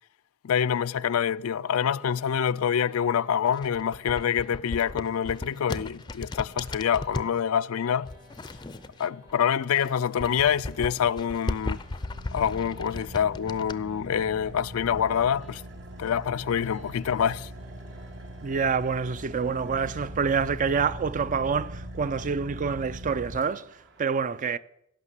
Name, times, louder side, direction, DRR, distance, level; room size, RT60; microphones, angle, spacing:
voice 1, 0.4-8.1 9.0-11.8 12.3-15.6 16.0-17.5, left 8 dB, 85° left, 0.4 m, -26 dB
sound 1, 1.1-20.6, left 1 dB, 85° right, 6.6 m, -55 dB
sound 2, 3.5-7.3 8.0-9.4 9.7-13.8, left 2 dB, 20° left, 0.5 m, -36 dB
Car / Idling, 11.6-24.1, right 1 dB, 60° right, 1.3 m, -41 dB
voice 2, 18.4-24.6, right 5 dB, 40° right, 0.4 m, -27 dB
16.5 x 5.9 x 8.1 m
head